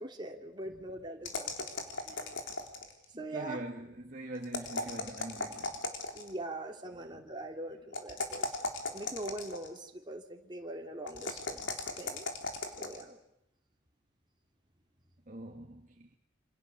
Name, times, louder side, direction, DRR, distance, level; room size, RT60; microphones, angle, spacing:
voice 1, 0.0-1.8 2.0-2.3 3.2-3.6 6.1-8.7 8.9-12.3 12.8-13.2, right 1 dB, 25° right, 3.0 m, -42 dB
sound 1, 1.2-3.0 4.4-6.4 7.9-9.8 11.1-13.0, left 3 dB, 80° left, 3.8 m, -37 dB
voice 2, 3.1-5.8 6.9-7.3 15.3-16.1, right 1 dB, 40° right, 1.8 m, -44 dB
27.5 x 27.5 x 7.1 m
head